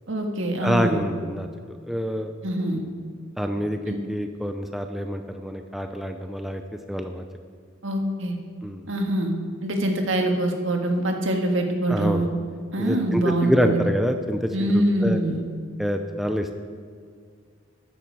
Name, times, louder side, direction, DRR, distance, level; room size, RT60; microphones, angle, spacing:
voice 1, 0.1-1.1 2.4-2.8 3.9-4.0 7.8-8.4 8.9-9.3 9.6-12.3 12.7-13.8 14.5-15.4, right 1 dB, 75° right, 3 dB, 1.7 m, -24 dB
voice 2, 0.6-1.5 1.9-2.3 3.4-6.6 6.9-7.3 8.6-8.8 11.9-12.3 12.8-15.2 15.8-16.5, equal, ahead, 5 dB, 0.5 m, -26 dB
13.5 x 11.0 x 4.7 m, 2.1 s
head